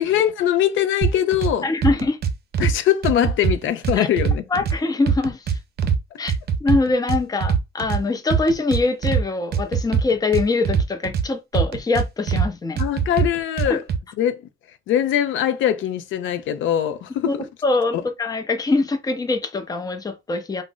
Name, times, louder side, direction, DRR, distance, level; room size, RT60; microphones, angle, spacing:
voice 1, 0.0-1.7 2.6-4.4 12.8-13.8 14.2-14.4 14.9-17.4 17.9-18.0, left 10 dB, 80° left, 0.4 m, -21 dB
sound 1, 1.0-1.5 1.8-2.7 3.0-4.8 5.1-6.0 6.3-8.0 8.3-9.2 9.5-11.2 11.5-12.5 12.8-14.0, right 7 dB, 55° right, 0.5 m, -21 dB
voice 2, 1.6-2.2 4.0-4.1 4.5-5.6 6.2-6.3 6.6-12.8 13.7-13.8 17.3-17.4 17.6-20.6, left 3 dB, 20° left, 0.5 m, -23 dB
2.5 x 2.0 x 3.7 m
cardioid pair, 90°, 20 cm